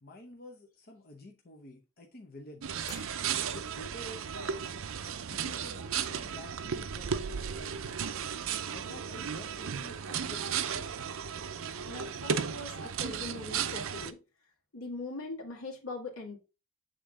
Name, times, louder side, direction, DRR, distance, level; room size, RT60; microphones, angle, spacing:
voice 1, 0.0-2.7 3.5-4.6 5.0-7.8 8.7-11.0, left 1 dB, 45° left, 0.8 m, -49 dB
sound 1, 2.6-14.1, right 7 dB, 65° right, 0.5 m, -35 dB
sound 2, 2.8-3.9, left 2 dB, 15° left, 1.5 m, -51 dB
voice 2, 11.9-14.2 14.7-16.4, left 2 dB, 80° left, 2.1 m, -41 dB
7.7 x 3.7 x 3.7 m
head